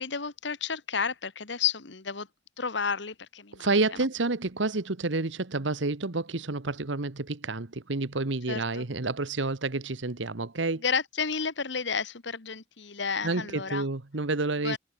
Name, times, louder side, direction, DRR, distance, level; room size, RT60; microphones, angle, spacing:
voice 1, 0.0-2.3 2.6-3.7 8.5-8.8 10.8-13.8 14.6-14.8, left 6 dB, 65° left, 1.6 m, -31 dB
voice 2, 3.6-10.8 13.2-14.8, right 3 dB, 75° right, 1.3 m, -29 dB
head